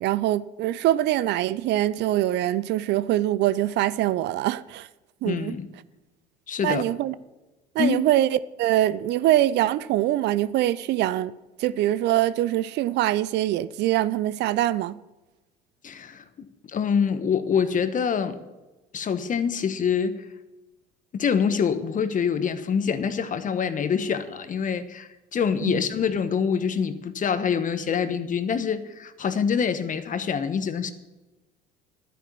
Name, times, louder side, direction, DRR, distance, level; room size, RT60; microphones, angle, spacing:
voice 1, 0.0-4.9 5.2-5.5 6.6-7.1 7.8-11.3 11.6-15.0 25.6-25.8, right 14 dB, 55° right, 0.5 m, -23 dB
voice 2, 5.2-5.7 6.5-6.8 7.8-8.0 15.8-18.4 18.9-20.2 21.1-30.9, left 6 dB, 40° left, 1.3 m, -25 dB
12.0 x 9.9 x 7.0 m
hypercardioid pair, 65°, 21 cm